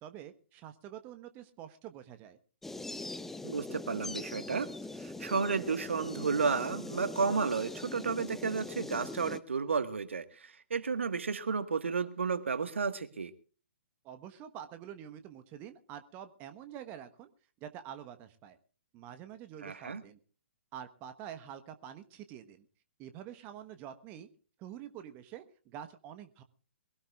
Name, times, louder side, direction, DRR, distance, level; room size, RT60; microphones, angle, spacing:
voice 1, 0.0-2.4 14.0-17.3 17.6-18.6 18.9-20.2 20.7-22.7 23.0-24.3 24.6-26.4, right 10 dB, 25° right, 1.2 m, -47 dB
sound 1, 2.6-9.4, left 2 dB, 5° left, 0.7 m, -42 dB
voice 2, 3.4-4.7 5.0-13.3 19.6-20.0, right 5 dB, 65° right, 1.6 m, -32 dB
22.5 x 17.0 x 2.4 m
figure-of-eight pair, 125°, 7 cm